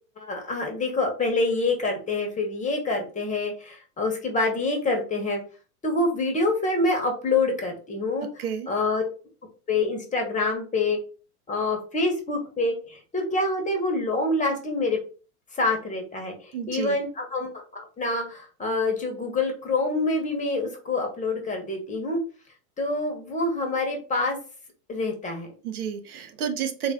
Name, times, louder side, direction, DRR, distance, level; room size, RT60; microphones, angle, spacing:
voice 1, 0.2-5.4 5.8-9.0 9.7-11.0 11.5-15.0 15.5-22.2 22.8-24.4 24.9-25.5, left 2 dB, 15° left, 3 dB, 1.0 m, -26 dB
voice 2, 16.5-17.0 25.6-26.9, right 7 dB, 70° right, 8 dB, 0.8 m, -30 dB
3.5 x 2.6 x 3.6 m, 0.36 s
hypercardioid pair, 105°, 46 cm